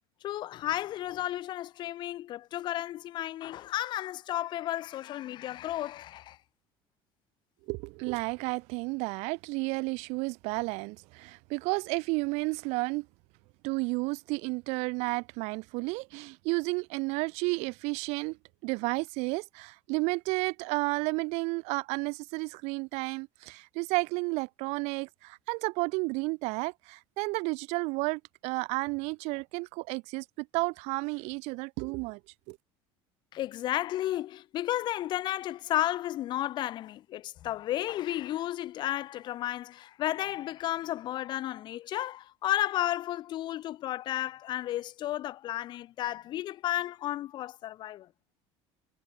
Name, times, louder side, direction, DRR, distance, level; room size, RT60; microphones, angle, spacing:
voice 1, 0.2-6.4 33.3-48.1, left 13 dB, 40° left, 3.1 m, -33 dB
voice 2, 7.7-13.1 13.6-18.4 18.6-32.2 32.5-32.6, right 27 dB, 65° right, 4.0 m, -32 dB
cardioid pair, 175°, 12 cm